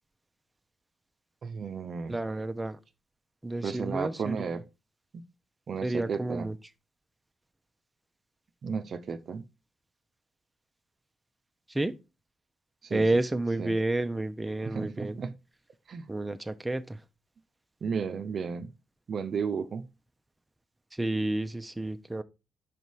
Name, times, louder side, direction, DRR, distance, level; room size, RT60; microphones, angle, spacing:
voice 1, 1.4-2.2 3.6-4.6 5.7-6.5 8.6-9.4 12.8-13.0 13.6-13.7 14.6-15.3 15.9-16.1 17.8-18.7 19.1-19.8, right 6 dB, 60° right, 0.6 m, -33 dB
voice 2, 2.1-2.8 3.4-4.3 5.8-6.5 11.7-11.9 12.9-15.2 16.1-17.0 21.0-22.2, right 2 dB, 15° right, 0.7 m, -30 dB
5.3 x 5.0 x 4.7 m
hypercardioid pair, 45°, 0 cm